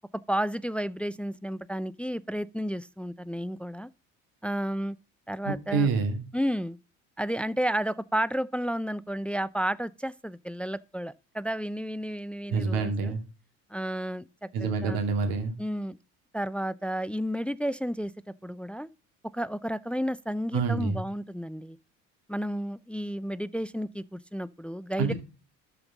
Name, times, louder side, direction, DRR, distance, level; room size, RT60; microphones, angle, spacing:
voice 1, 0.3-3.9 4.4-5.0 5.3-5.9 6.3-6.8 7.2-13.1 13.7-15.0 15.6-16.0 16.3-18.1 18.4-18.9 19.3-21.8 22.3-25.1, equal, 5° left, 0.4 m, -32 dB
voice 2, 5.4-6.2 12.5-13.2 14.5-15.5 20.5-21.0 25.0-25.1, right 4 dB, 70° right, 2.7 m, -27 dB
12.5 x 5.4 x 4.0 m
hypercardioid pair, 70°, 36 cm